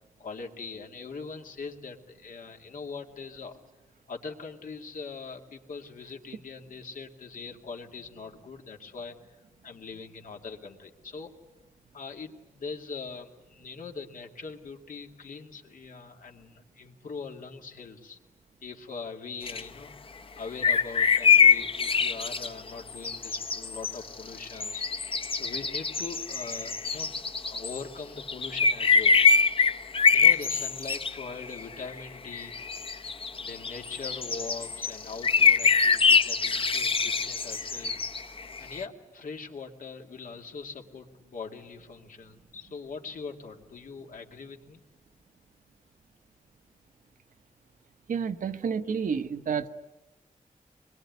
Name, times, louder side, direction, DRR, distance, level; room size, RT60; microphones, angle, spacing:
voice 1, 0.2-3.6 4.1-9.4 9.6-11.4 11.9-18.2 18.6-27.1 27.4-29.2 30.1-32.6 33.4-38.0 38.6-44.8, left 4 dB, 90° left, 3 dB, 2.4 m, -42 dB
sound 1, 19.5-19.6 20.6-27.8 28.2-31.6 32.0-32.1 32.3-38.8, left 5 dB, 40° left, 0.8 m, -24 dB
voice 2, 48.1-49.7, right 6 dB, 80° right, 9 dB, 1.1 m, -30 dB
24.5 x 21.5 x 9.5 m, 1.1 s
wide cardioid pair, 150°, 13 cm